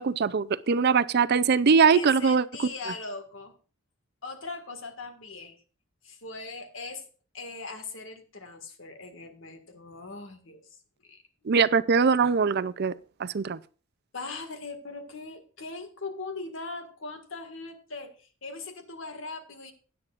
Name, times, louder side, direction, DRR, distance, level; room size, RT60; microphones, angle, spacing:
voice 1, 0.0-2.7 11.5-12.9 13.2-13.6, right 5 dB, 55° right, 0.5 m, -22 dB
voice 2, 1.9-3.5 4.2-5.6 6.0-7.1 7.3-10.6 11.0-11.2 14.1-19.7, left 3 dB, 70° left, 1.9 m, -40 dB
16.5 x 9.9 x 2.5 m
head